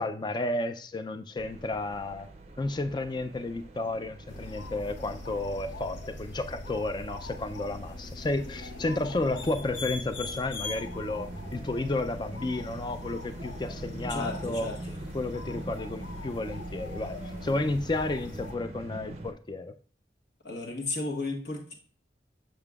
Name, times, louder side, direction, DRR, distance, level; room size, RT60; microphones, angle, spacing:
voice 1, 0.0-2.3 2.6-14.7 15.1-19.8, left 2 dB, 25° left, 10 dB, 0.4 m, -32 dB
sound 1, 1.4-19.3, right 2 dB, 35° right, 0.5 m, -44 dB
sound 2, 4.3-18.5, left 2 dB, 90° left, 0.8 m, -41 dB
voice 2, 14.1-14.8 20.4-21.7, left 2 dB, 65° left, 0 dB, 1.5 m, -34 dB
6.9 x 6.6 x 2.4 m, 0.42 s
head